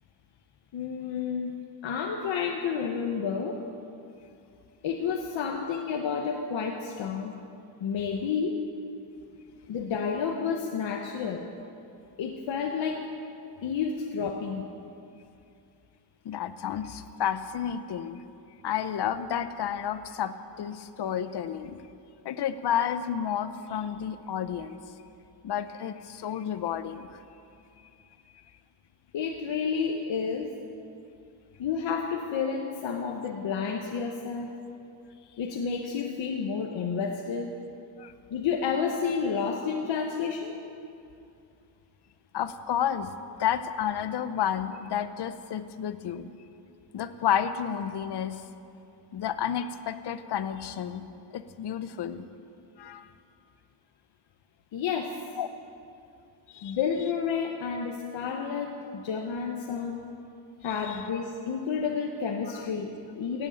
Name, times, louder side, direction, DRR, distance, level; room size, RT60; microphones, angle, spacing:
voice 1, 0.7-1.5 1.8-3.6 4.8-7.3 7.8-8.6 9.7-11.5 12.2-13.1 13.6-14.7 29.1-30.5 31.6-34.5 35.4-37.5 38.3-40.6 54.7-55.2 56.6-60.0 60.6-63.5, left 6 dB, 80° left, 1 dB, 1.1 m, -30 dB
voice 2, 16.2-18.2 18.6-21.8 22.2-24.8 25.4-27.1 38.0-38.1 42.3-43.1 43.4-46.3 46.9-48.4 49.1-51.0 51.3-52.2 52.8-53.1 55.4-55.5 56.5-56.8 60.6-61.0 62.5-62.6, left 9 dB, 60° left, 11 dB, 0.8 m, -31 dB
16.5 x 8.3 x 8.5 m, 2.6 s
wide cardioid pair, 140°, 45 cm